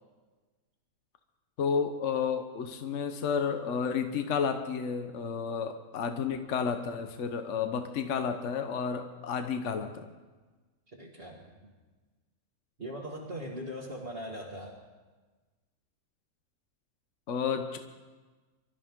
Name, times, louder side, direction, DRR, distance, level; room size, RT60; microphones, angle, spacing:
voice 1, 1.6-10.1 17.3-17.8, left 6 dB, 60° left, 7 dB, 1.2 m, -31 dB
voice 2, 10.9-11.7 12.8-14.8, equal, 40° right, -5 dB, 2.0 m, -40 dB
25.0 x 13.0 x 3.7 m, 1.3 s
omnidirectional pair, 1.5 m